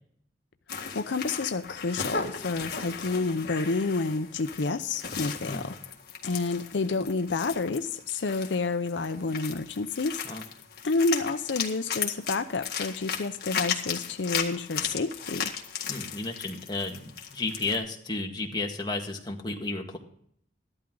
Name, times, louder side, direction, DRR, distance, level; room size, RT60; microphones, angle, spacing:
sound 1, 0.7-17.8, left 7 dB, 55° left, 1.8 m, -36 dB
voice 1, 0.9-5.7 6.2-10.2 10.8-15.5, left 3 dB, 75° left, 9 dB, 0.6 m, -29 dB
voice 2, 15.9-17.0 17.3-20.0, left 3 dB, 25° left, 1 dB, 1.7 m, -32 dB
14.5 x 11.5 x 3.8 m, 0.66 s
head